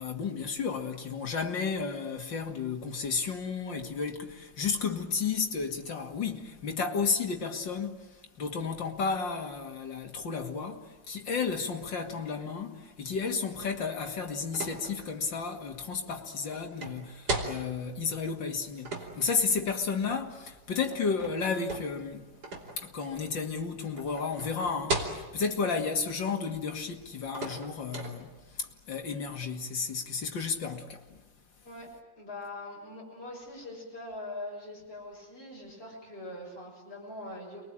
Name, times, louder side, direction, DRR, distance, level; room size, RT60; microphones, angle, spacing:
voice 1, 0.0-22.3 22.8-31.2, left 5 dB, 80° left, 3.0 m, -32 dB
sound 1, 14.0-28.6, right 2 dB, 60° right, 3.8 m, -40 dB
voice 2, 32.2-37.6, left 1 dB, 30° left, 6.8 m, -42 dB
29.5 x 22.5 x 9.0 m
omnidirectional pair, 2.0 m